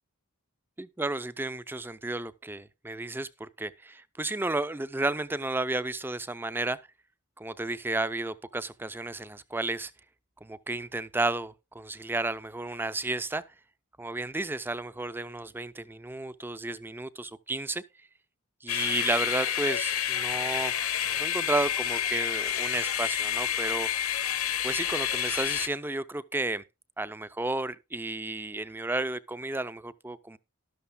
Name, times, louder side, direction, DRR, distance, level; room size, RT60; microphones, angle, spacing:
voice 1, 0.8-6.8 7.4-9.9 10.4-13.4 14.0-17.8 18.6-20.7 21.2-23.9 24.6-26.6 27.0-30.4, right 2 dB, 10° right, 0.4 m, -32 dB
sound 1, 18.7-25.7, left 10 dB, 70° left, 1.1 m, -29 dB
12.5 x 12.0 x 2.2 m
head